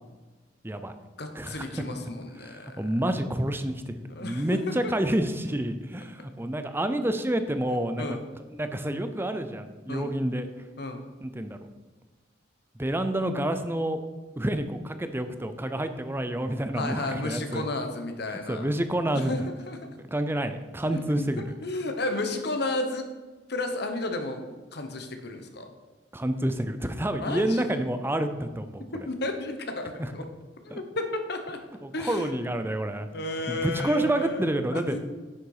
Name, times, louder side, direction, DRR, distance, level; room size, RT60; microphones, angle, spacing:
voice 1, 0.6-1.0 1.3-1.7 2.4-8.0 8.5-10.5 11.2-11.6 12.8-14.0 14.4-17.7 18.5-19.3 19.9-21.4 26.1-28.9 30.0-30.1 30.7-30.8 31.8-33.1 33.5-35.0, right 1 dB, 10° right, 9 dB, 0.6 m, -28 dB
voice 2, 1.2-2.8 4.1-4.9 7.7-8.2 9.9-10.1 10.8-11.1 16.7-18.7 19.1-19.4 19.7-19.9 20.9-23.1 23.5-24.4 24.7-25.7 27.1-27.8 28.9-30.3 30.6-31.6 31.9-32.5 33.1-35.0, left 2 dB, 60° left, 6 dB, 1.2 m, -33 dB
10.0 x 6.7 x 4.9 m, 1.3 s
head